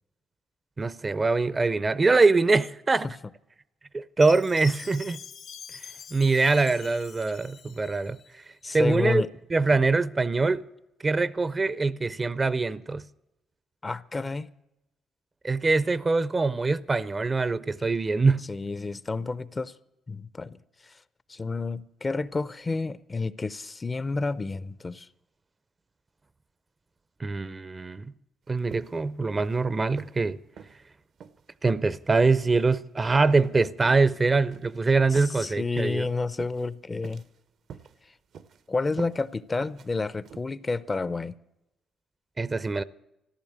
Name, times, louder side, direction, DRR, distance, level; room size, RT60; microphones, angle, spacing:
voice 1, 0.8-3.1 3.9-5.2 6.1-8.2 8.7-9.2 9.5-10.6 11.0-13.0 15.4-18.5 27.2-28.1 28.5-30.4 31.6-36.1 42.4-42.8, right 3 dB, 25° right, 0.5 m, -23 dB
Chime, 4.2-8.3, left 7 dB, 70° left, 1.0 m, -44 dB
voice 2, 8.6-9.3 9.7-9.8 13.8-14.5 18.5-19.7 20.1-20.6 20.8-20.9 21.3-25.1 35.1-37.2 38.7-41.3, left 3 dB, 25° left, 0.5 m, -30 dB
sound 1, 28.7-29.1 29.3-29.6 30.0-30.2 30.6-30.8 31.2-31.4 31.9-32.1 32.5-32.7 33.2-33.5 33.8-34.0 34.5-34.7 35.1-35.4 35.8-36.0 36.4-36.7 37.0-37.4 37.7-38.0 38.3-38.6 39.0-39.2 39.6-39.9 40.2-40.4, right 7 dB, 65° right, 0.7 m, -45 dB
14.0 x 11.5 x 8.6 m
cardioid pair, 90°, 0 cm